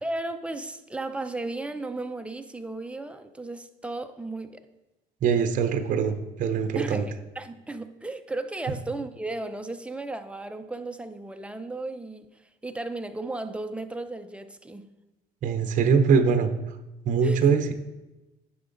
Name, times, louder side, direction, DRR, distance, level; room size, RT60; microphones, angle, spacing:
voice 1, 0.0-4.7 6.7-14.9 17.2-17.4, right 2 dB, 5° right, 7 dB, 0.6 m, -35 dB
voice 2, 5.2-7.1 15.4-16.5 17.0-17.7, right 6 dB, 50° right, 7 dB, 0.8 m, -22 dB
9.6 x 6.0 x 3.9 m, 1.0 s
cardioid pair, 110°, 17 cm